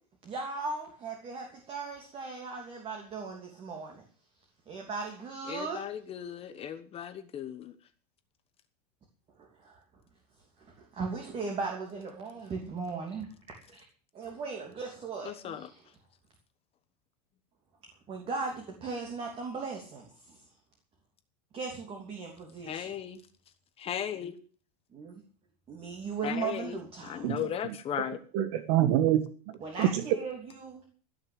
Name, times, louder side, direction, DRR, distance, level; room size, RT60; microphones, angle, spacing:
voice 1, 0.2-4.0 4.7-5.9 9.4-9.8 10.6-13.8 14.1-15.9 18.1-20.4 21.5-22.9 24.9-25.2 25.7-27.3 29.6-30.8, right 4 dB, 25° right, 3.1 m, -38 dB
voice 2, 5.5-7.7 15.3-15.6 22.7-23.2 23.8-24.3 26.2-26.6 27.1-28.2, left 9 dB, 30° left, 1.2 m, -36 dB
voice 3, 27.2-27.7 28.3-29.2 29.8-30.0, right 12 dB, 55° right, 1.6 m, -26 dB
16.5 x 6.5 x 8.9 m
supercardioid pair, 145°, 21 cm